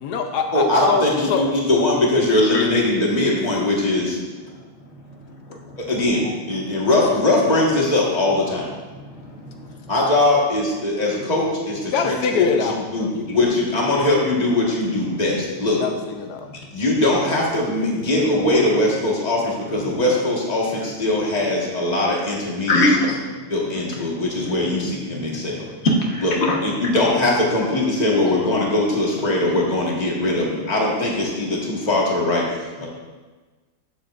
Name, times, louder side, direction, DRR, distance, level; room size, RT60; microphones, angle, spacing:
voice 1, 0.0-1.4 11.9-13.1 15.8-16.5, left 5 dB, 85° left, 4 dB, 1.3 m, -24 dB
voice 2, 0.5-4.2 5.9-8.7 9.9-15.8 16.7-22.9 23.5-25.7 26.2-26.4 26.6-32.5 32.8-32.9, left 2 dB, 25° left, -3 dB, 1.6 m, -21 dB
voice 3, 5.2-5.8 6.6-6.7 8.9-9.9 16.5-16.6 19.8-19.9 22.7-23.2 24.1-24.2 25.1-26.6, left 1 dB, 45° left, -1 dB, 1.5 m, -23 dB
13.5 x 7.1 x 2.5 m, 1.3 s
omnidirectional pair, 1.6 m